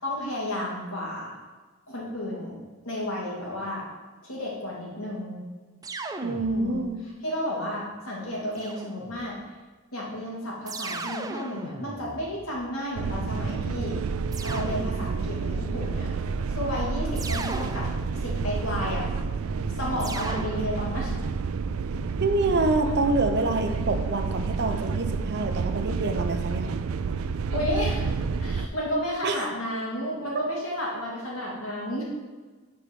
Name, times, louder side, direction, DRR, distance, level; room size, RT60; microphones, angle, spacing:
voice 1, 0.0-1.3 1.9-2.6 2.8-3.9 4.2-5.4 6.4-6.9 7.2-9.4 9.9-14.0 14.4-16.1 16.5-17.9 18.2-19.1 19.8-21.2 27.5-28.1 28.4-32.0, left 1 dB, 80° left, -4 dB, 2.5 m, -32 dB
sound 1, 5.8-7.0 8.6-9.4 10.7-13.0 14.3-15.4 17.2-18.5 20.0-21.2, right 3 dB, 20° right, 0.4 m, -38 dB
voice 2, 6.2-7.0 22.2-26.7 29.2-29.4, right 2 dB, 55° right, 6 dB, 0.7 m, -26 dB
sound 2, 13.0-28.7, right 5 dB, 90° right, 0.4 m, -29 dB
7.1 x 4.7 x 6.2 m, 1.3 s
head